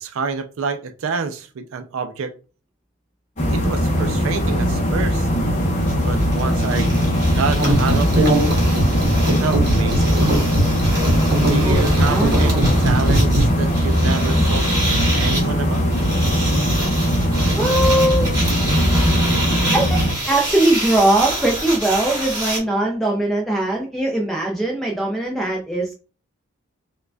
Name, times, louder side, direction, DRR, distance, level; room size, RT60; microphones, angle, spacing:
voice 1, 0.0-2.3 3.5-5.3 6.0-6.9 7.4-8.5 9.4-10.3 11.5-14.7 15.2-15.8, right 5 dB, 65° right, 0.4 m, -28 dB
sound 1, 3.4-20.1, equal, 30° left, 0.8 m, -19 dB
sound 2, 5.3-5.4 5.6-22.6, right 1 dB, 20° right, 1.2 m, -28 dB
sound 3, 7.6-13.4, right 1 dB, 45° right, 0.8 m, -20 dB
voice 2, 11.6-12.7 14.3-14.6 17.6-18.3 19.7-25.9, right 1 dB, ahead, 0.3 m, -21 dB
4.8 x 2.3 x 2.2 m
head